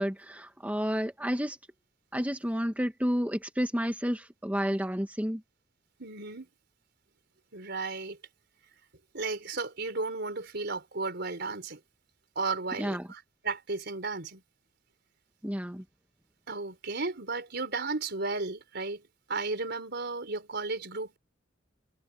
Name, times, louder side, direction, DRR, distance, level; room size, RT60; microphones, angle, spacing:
voice 1, 0.0-1.6 2.1-5.4 12.8-13.1 15.4-15.8, equal, 10° right, 1.8 m, -30 dB
voice 2, 6.0-6.5 7.5-8.2 9.1-11.8 12.4-14.4 16.5-21.2, right 3 dB, 60° right, 4.3 m, -34 dB
head